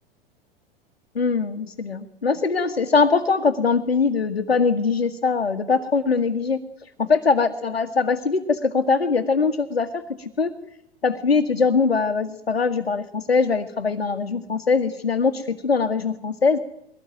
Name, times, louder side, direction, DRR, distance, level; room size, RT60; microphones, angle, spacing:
voice 1, 1.2-10.5 11.0-16.6, left 4 dB, 85° left, 3 dB, 1.8 m, -22 dB
23.0 x 18.5 x 9.0 m, 0.79 s
figure-of-eight pair, 95°, 30 cm